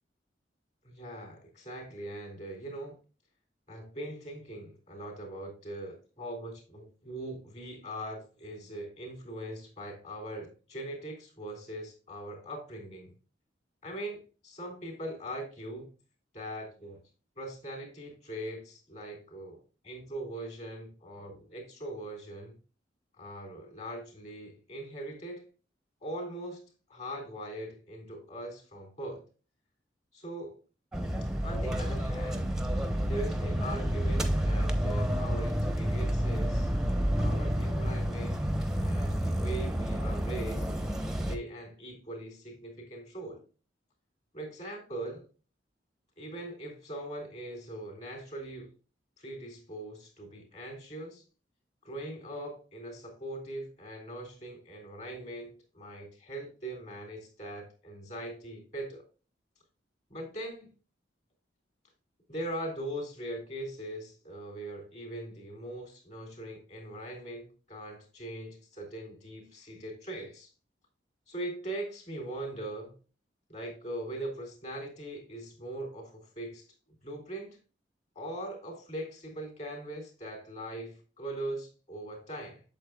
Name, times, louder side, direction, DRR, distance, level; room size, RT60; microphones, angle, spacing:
voice 1, 0.8-3.0 3.7-13.1 13.8-15.9 16.3-17.0 17.4-22.5 23.2-25.4 26.0-26.6 26.9-29.2 30.1-30.6 31.4-32.5 33.1-36.7 37.2-38.5 38.8-40.7 41.2-43.4 44.3-45.2 46.2-48.7 49.2-51.2 51.8-59.1 60.1-60.7 62.3-70.5 71.3-73.0 73.5-76.6 77.0-77.6 78.2-82.6, right 1 dB, 40° left, 3.7 m, -41 dB
sound 1, 30.9-41.4, equal, 5° right, 0.9 m, -29 dB
8.7 x 7.1 x 2.3 m
head